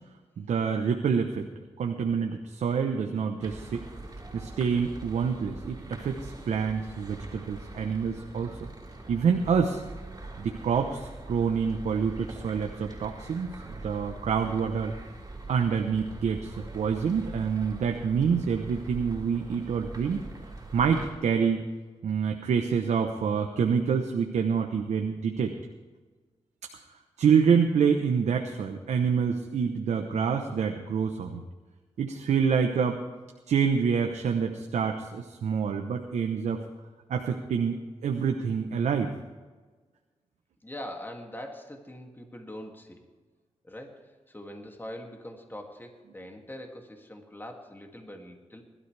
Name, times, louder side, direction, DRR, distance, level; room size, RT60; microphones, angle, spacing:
voice 1, 0.4-1.5 1.8-3.8 4.3-8.6 9.1-9.8 10.4-14.9 15.5-20.2 20.7-21.6 22.0-25.5 27.2-31.4 32.0-33.0 33.5-36.6 37.1-39.1, right 6 dB, 90° right, 4 dB, 1.0 m, -27 dB
sound 1, 3.4-21.1, right 2 dB, 30° right, 4.8 m, -43 dB
voice 2, 40.6-43.0 43.6-48.6, left 1 dB, 20° left, 2 dB, 2.4 m, -43 dB
21.0 x 12.5 x 3.4 m, 1.3 s
cardioid pair, 60°, 12 cm